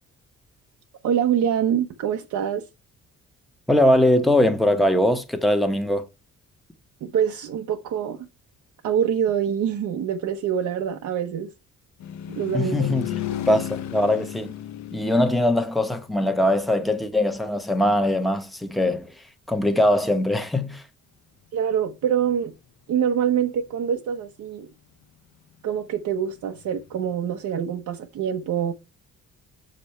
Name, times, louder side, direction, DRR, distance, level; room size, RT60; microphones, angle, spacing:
voice 1, 1.0-2.6 7.0-8.2 8.8-11.5 12.3-13.2 21.5-22.5 22.9-24.7 25.6-28.7, right 8 dB, 70° right, 1.0 m, -25 dB
voice 2, 3.7-6.1 12.5-13.0 13.5-14.5 14.9-20.8, left 1 dB, ahead, 1.1 m, -21 dB
sound 1, 12.0-16.9 26.4-27.1, left 11 dB, 65° left, 0.9 m, -34 dB
6.7 x 5.2 x 4.4 m
cardioid pair, 90°, 30 cm